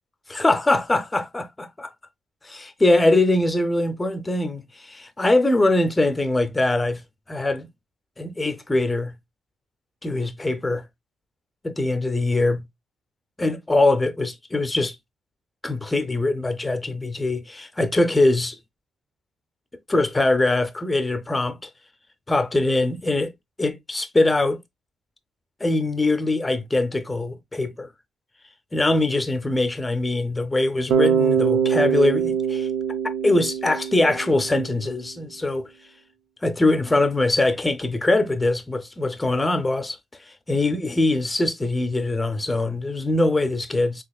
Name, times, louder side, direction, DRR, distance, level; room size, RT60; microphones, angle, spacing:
voice 1, 0.3-1.9 2.4-7.0 7.3-7.7 8.2-9.1 10.0-10.9 11.6-12.6 13.4-15.0 15.6-18.6 19.9-21.7 22.3-23.3 23.6-24.6 25.6-27.9 28.7-32.7 33.0-35.7 36.4-40.0 40.5-44.0, left 2 dB, 15° left, 0.6 m, -22 dB
Bass guitar, 30.9-34.9, right 7 dB, 75° right, 0.7 m, -23 dB
4.1 x 2.9 x 2.3 m
cardioid pair, 90°, 0 cm